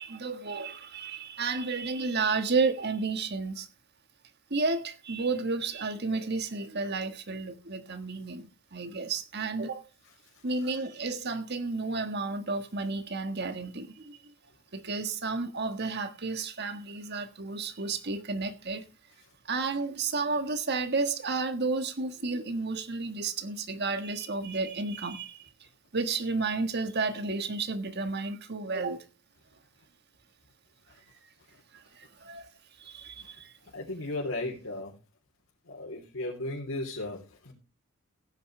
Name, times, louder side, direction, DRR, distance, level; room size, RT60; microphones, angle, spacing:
voice 1, 0.0-3.7 4.5-9.9 10.4-14.3 14.7-18.8 19.4-29.0 31.2-31.3 31.7-32.5 32.8-33.5, right 4 dB, 55° right, 1.5 m, -32 dB
voice 2, 33.7-35.0 35.7-37.5, left 2 dB, 90° left, 3.4 m, -35 dB
16.5 x 9.5 x 3.3 m
head